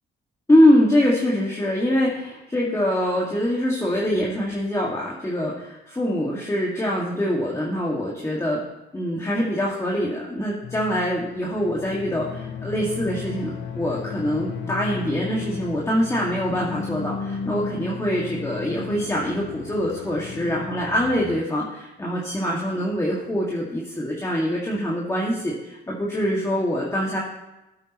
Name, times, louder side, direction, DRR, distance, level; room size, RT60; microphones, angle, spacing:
voice 1, 0.5-8.6 8.9-27.2, equal, 15° left, -4 dB, 1.9 m, -24 dB
sound 1, 10.6-21.4, left 6 dB, 70° left, 1.1 m, -34 dB
15.5 x 8.8 x 3.0 m, 0.98 s
cardioid pair, 90°, 20 cm